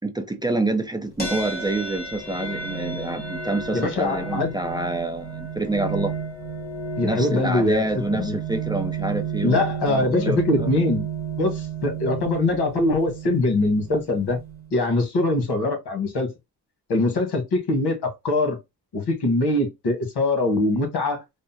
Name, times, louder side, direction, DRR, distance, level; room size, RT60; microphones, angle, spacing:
voice 1, 0.0-6.1 7.0-10.7, right 2 dB, 10° right, 0.4 m, -27 dB
sound 1, 1.2-14.7, right 5 dB, 25° left, 1.4 m, -32 dB
voice 2, 3.7-4.5 7.0-7.8 8.1-8.3 9.4-11.0 11.4-14.4 14.7-16.3 16.9-18.6 18.9-21.2, left 2 dB, 85° left, 1.2 m, -22 dB
3.5 x 2.1 x 2.7 m
cardioid pair, 100°, 38 cm